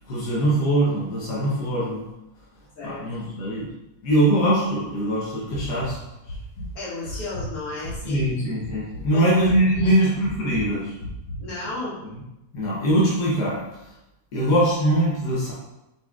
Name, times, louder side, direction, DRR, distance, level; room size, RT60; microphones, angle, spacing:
voice 1, 0.1-2.0 2.8-3.7 4.0-6.0 8.0-10.9 12.5-13.6 14.3-15.5, right 1 dB, 85° left, -6 dB, 1.5 m, -22 dB
sound 1, 5.5-5.9 6.3-6.7 7.0-8.3 8.6-9.0 9.4-9.8 10.2-10.6 11.0-11.4, left 1 dB, 40° left, 1.1 m, -34 dB
voice 2, 6.7-8.3 9.1-9.3 9.7-10.1 11.4-12.0, left 2 dB, 65° left, -7 dB, 1.9 m, -33 dB
4.6 x 4.1 x 2.3 m, 0.92 s
omnidirectional pair, 1.7 m